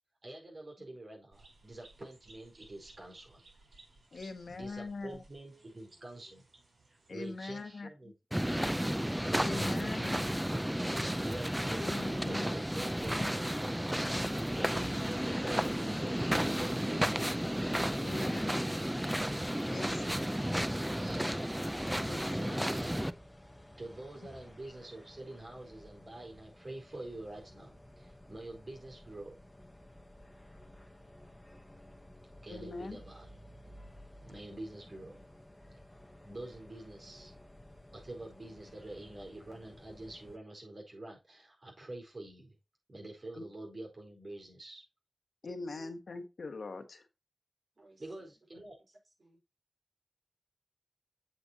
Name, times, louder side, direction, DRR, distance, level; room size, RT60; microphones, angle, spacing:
voice 1, 0.2-3.4 4.1-4.2 4.5-6.5 6.9-8.7 9.3-10.2 11.2-13.9 14.3-17.3 17.8-19.0 20.1-20.6 20.9-21.4 22.2-23.1 23.8-29.3 31.8-31.9 32.4-33.4 34.2-35.2 36.2-37.3 37.9-42.6 42.9-44.8 48.0-48.8, right 2 dB, 50° right, 0 dB, 4.7 m, -47 dB
sound 1, 1.3-7.6, right 2 dB, 90° right, 4.2 m, -61 dB
voice 2, 4.1-5.2 7.1-7.9 9.4-10.2 11.8-12.5 18.0-18.5 19.7-20.2 22.0-22.8 24.2-24.3 32.5-33.0 38.7-38.8 43.4-43.5 45.4-47.0, left 3 dB, 80° left, 8 dB, 1.3 m, -42 dB
voice 3, 5.5-6.4 45.4-46.0 47.7-49.4, right 2 dB, 65° right, -1 dB, 5.1 m, -60 dB
sound 2, 8.3-23.1, equal, 5° right, 0.5 m, -33 dB
sound 3, 21.8-40.4, left 1 dB, 15° left, 1.0 m, -55 dB
8.0 x 7.9 x 2.9 m, 0.26 s
wide cardioid pair, 95°, 0 cm